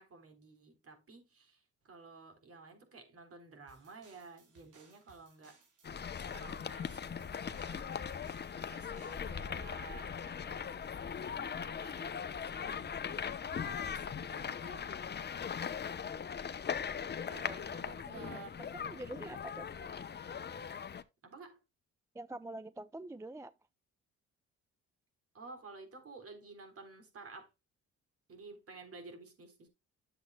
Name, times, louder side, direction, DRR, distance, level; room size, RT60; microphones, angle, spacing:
voice 1, 0.0-5.6 6.3-7.9 8.7-15.7 16.2-16.3 17.1-18.5 21.2-21.6 25.3-27.5 28.3-29.7, right 4 dB, 50° right, 3.6 m, -53 dB
sound 1, 3.7-9.3, right 4 dB, 85° right, 4.5 m, -65 dB
sound 2, 5.8-21.0, left 7 dB, 35° left, 0.8 m, -40 dB
voice 2, 17.4-17.8 18.2-19.7 22.1-23.5, right 1 dB, 10° right, 0.4 m, -46 dB
11.0 x 7.5 x 2.2 m
cardioid pair, 90°, 30 cm